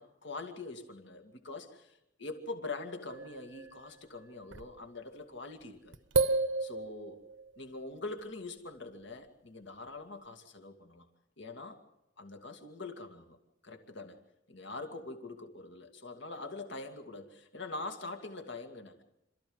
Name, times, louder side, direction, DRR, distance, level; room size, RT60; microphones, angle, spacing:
voice 1, 0.0-6.0 6.6-7.2 7.6-11.1 11.4-11.8 12.2-13.4 13.6-14.2 14.5-19.0, left 3 dB, 65° left, 5 dB, 2.2 m, -44 dB
sound 1, 3.1-3.9 4.5-4.7 5.9-7.6, right 3 dB, 75° right, 0.9 m, -32 dB
27.0 x 14.0 x 7.9 m, 0.88 s
head